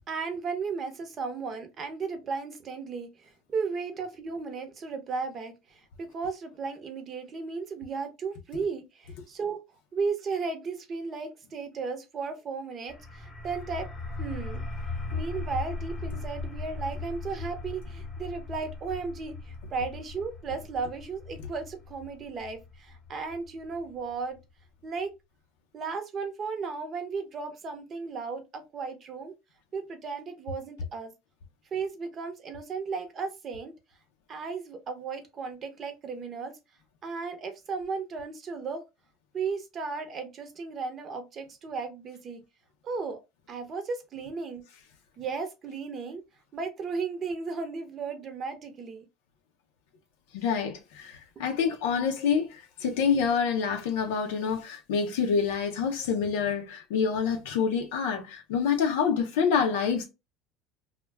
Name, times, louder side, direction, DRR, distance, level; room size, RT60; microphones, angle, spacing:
voice 1, 0.0-9.6 9.9-13.9 14.2-14.7 15.1-24.4 24.8-25.1 25.7-29.3 29.7-31.1 31.7-33.7 34.3-36.5 37.0-38.8 39.3-42.4 42.8-43.2 43.5-44.6 45.2-46.2 46.5-49.0 51.4-51.5, right 4 dB, 35° right, 0.7 m, -35 dB
sound 1, 12.9-24.4, left 3 dB, 20° left, 0.8 m, -38 dB
voice 2, 50.3-60.0, left 6 dB, 85° left, 0.5 m, -27 dB
2.2 x 2.1 x 3.2 m
supercardioid pair, 115°, 0 cm